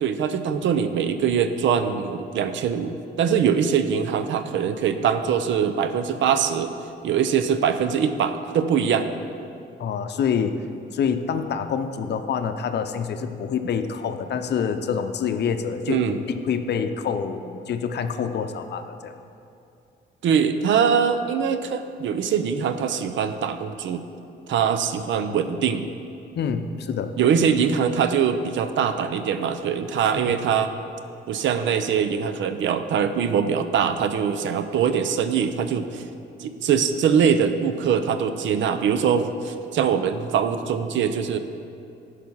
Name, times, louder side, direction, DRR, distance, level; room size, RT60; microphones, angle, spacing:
voice 1, 0.0-6.7 7.0-9.1 15.9-16.2 20.2-24.0 24.5-25.9 27.2-30.7 31.3-36.0 36.4-41.4, right 7 dB, 70° right, 10 dB, 0.6 m, -22 dB
voice 2, 9.8-10.6 10.9-16.0 16.3-19.1 26.3-27.1 30.3-30.4, left 7 dB, 60° left, 8 dB, 0.6 m, -26 dB
10.5 x 5.0 x 5.5 m, 2.6 s
cardioid pair, 90°, 20 cm